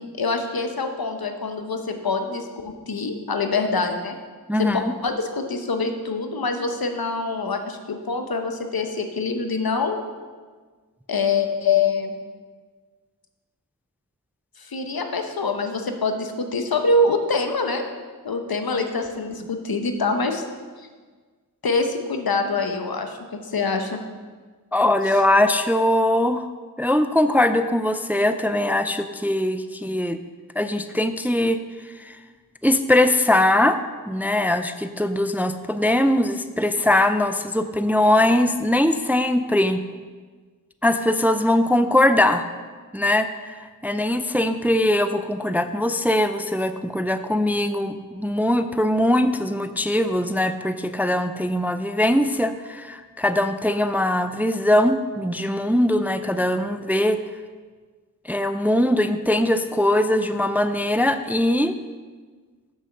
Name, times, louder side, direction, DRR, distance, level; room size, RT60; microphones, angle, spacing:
voice 1, 0.2-4.2 4.6-10.0 11.1-12.1 14.6-17.8 18.2-20.4 21.6-23.2 23.4-24.0 25.1-25.2, left 3 dB, 75° left, 6 dB, 1.0 m, -25 dB
voice 2, 4.5-4.8 24.7-26.4 26.8-30.2 30.6-31.6 32.0-32.2 32.6-33.8 34.1-39.8 40.8-42.4 42.9-57.2 58.3-61.8, left 1 dB, 5° right, 10 dB, 0.4 m, -21 dB
7.5 x 7.0 x 6.7 m, 1.5 s
wide cardioid pair, 60°, 37 cm